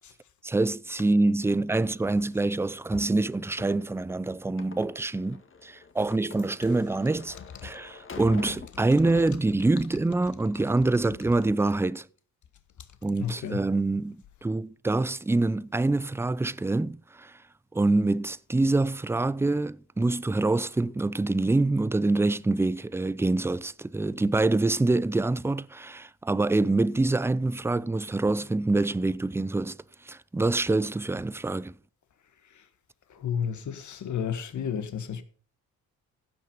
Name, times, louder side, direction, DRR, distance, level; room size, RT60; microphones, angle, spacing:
voice 1, 0.4-7.4 7.6-12.1 13.0-17.3 17.7-29.8 30.1-31.8, right 2 dB, 5° right, 0.4 m, -26 dB
sound 1, 2.9-9.8 10.1-10.7, left 5 dB, 35° left, 1.8 m, -45 dB
voice 2, 13.2-13.7 33.1-35.2, left 7 dB, 55° left, 1.7 m, -32 dB
15.5 x 6.2 x 5.3 m
supercardioid pair, 65°, 35 cm